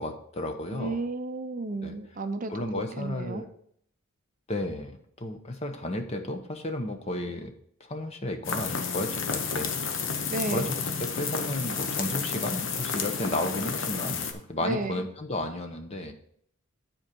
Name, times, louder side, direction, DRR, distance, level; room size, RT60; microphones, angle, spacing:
voice 1, 0.0-1.0 1.8-1.9 2.5-3.5 4.5-7.5 7.8-10.0 10.5-16.1, left 1 dB, 30° left, 5 dB, 0.8 m, -33 dB
voice 2, 0.7-2.5 3.0-3.4 10.3-10.7 14.6-15.0, right 2 dB, 35° right, 8 dB, 0.5 m, -32 dB
ice storm, 8.4-14.3, left 5 dB, 60° left, 0.9 m, -31 dB
9.5 x 4.4 x 5.2 m, 0.66 s
head